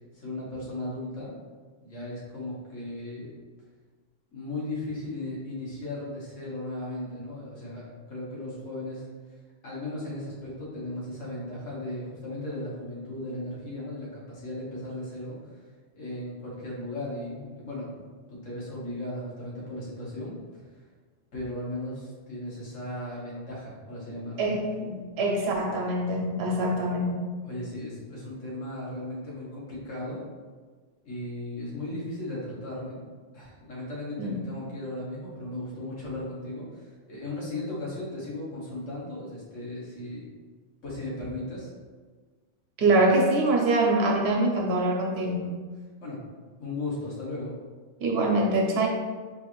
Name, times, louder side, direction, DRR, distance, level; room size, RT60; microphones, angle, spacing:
voice 1, 0.1-1.3 1.8-3.3 4.3-9.1 9.6-15.6 15.9-18.0 18.3-20.8 21.3-24.5 27.4-30.2 31.1-33.1 33.3-40.3 40.8-41.7 46.0-46.2 46.6-47.5, left 1 dB, 85° left, -6 dB, 1.6 m, -36 dB
voice 2, 24.4-27.2 34.2-34.4 42.8-45.5 48.0-48.9, right 2 dB, 60° right, 1 dB, 0.9 m, -24 dB
4.6 x 2.5 x 3.0 m, 1.4 s
omnidirectional pair, 1.3 m